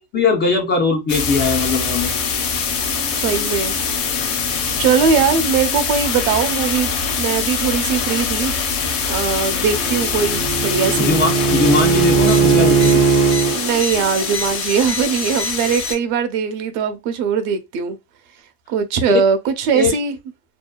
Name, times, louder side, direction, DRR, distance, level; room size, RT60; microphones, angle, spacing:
voice 1, 0.1-2.1 11.0-13.0 19.7-20.0, left 4 dB, 25° left, 0.3 m, -20 dB
sound 1, 1.1-15.9, left 5 dB, 55° left, 1.0 m, -23 dB
voice 2, 3.2-3.8 4.8-6.9 7.2-8.5 9.1-11.2 13.4-18.0 18.7-20.1, right 6 dB, 70° right, 0.7 m, -20 dB
Bowed string instrument, 9.5-13.6, right 6 dB, 35° right, 0.5 m, -18 dB
2.7 x 2.1 x 2.2 m
cardioid pair, 140°, 47 cm